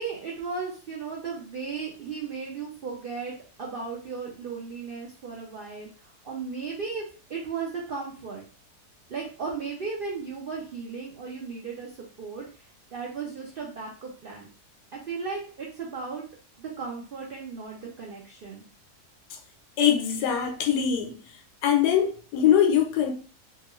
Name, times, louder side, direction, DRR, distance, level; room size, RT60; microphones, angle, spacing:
voice 1, 0.0-3.3 3.6-5.9 6.2-7.0 7.3-8.4 9.1-11.9 12.2-12.5 12.9-14.5 14.9-16.2 16.6-18.6, right 5 dB, 75° right, 0.5 m, -35 dB
voice 2, 19.8-21.2 21.6-23.1, left 9 dB, 85° left, 1.2 m, -22 dB
2.8 x 2.4 x 3.0 m
omnidirectional pair, 1.7 m